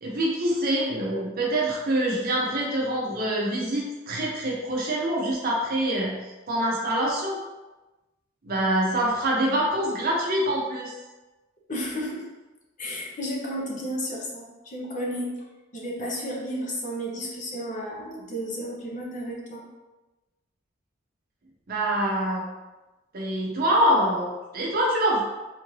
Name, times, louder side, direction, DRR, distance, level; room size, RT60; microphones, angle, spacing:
voice 1, 0.0-6.2 6.5-7.4 8.4-10.9 21.7-22.4 23.1-25.2, right 1 dB, 50° right, -3 dB, 0.6 m, -25 dB
voice 2, 11.7-12.2 12.8-15.3 15.7-19.6, equal, 40° left, -3 dB, 0.7 m, -32 dB
3.6 x 2.5 x 3.1 m, 1.1 s
head